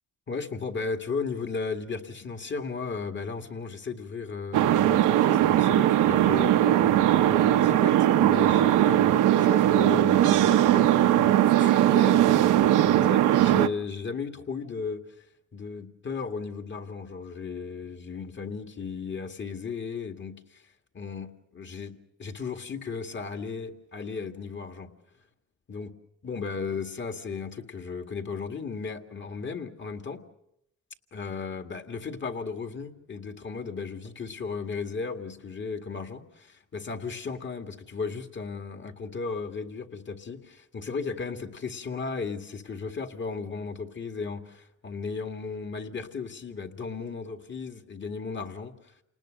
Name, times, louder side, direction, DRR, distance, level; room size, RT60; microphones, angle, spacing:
voice 1, 0.3-15.0 15.5-20.6 20.9-24.9 25.7-25.9 26.2-30.2 31.1-48.7, left 5 dB, 40° left, 2.2 m, -35 dB
sound 1, 4.5-13.7, right 12 dB, 85° right, 0.9 m, -20 dB
29.0 x 19.5 x 6.6 m
cardioid pair, 90°, 30 cm